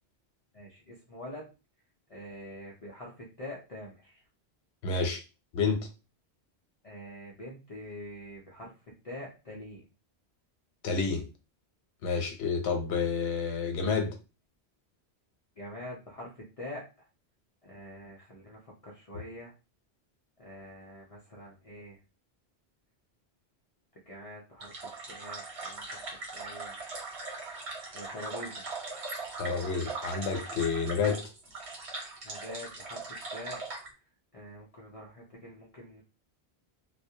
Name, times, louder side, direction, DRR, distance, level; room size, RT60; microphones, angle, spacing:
voice 1, 0.5-1.5 2.1-4.2 6.8-8.7 9.0-9.9 15.6-17.1 17.6-19.5 20.4-22.0 24.1-26.8 27.9-28.7 32.2-33.6 34.3-36.0, left 1 dB, 50° left, 0.4 m, -45 dB
voice 2, 4.8-5.2 5.5-5.9 10.8-11.3 12.0-14.2 29.4-31.2, left 5 dB, 85° left, 0.9 m, -29 dB
sound 1, 24.6-33.9, right 3 dB, 85° right, 1.1 m, -40 dB
2.3 x 2.0 x 2.7 m
omnidirectional pair, 1.1 m